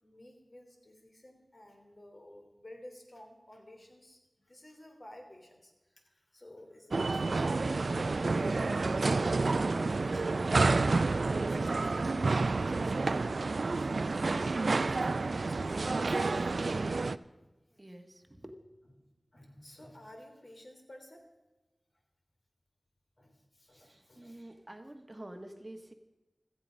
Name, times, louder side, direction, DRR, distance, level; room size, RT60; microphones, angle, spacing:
voice 1, 0.0-7.5 7.8-13.1 13.8-16.7 19.3-21.3 23.2-24.4, left 1 dB, 55° left, 3 dB, 3.3 m, -54 dB
sound 1, 6.9-17.2, right 3 dB, 80° right, 0.4 m, -29 dB
voice 2, 17.7-18.6 23.7-25.9, right 1 dB, 30° right, 6 dB, 1.3 m, -48 dB
16.0 x 14.0 x 5.2 m, 1.1 s
wide cardioid pair, 45°, 0 cm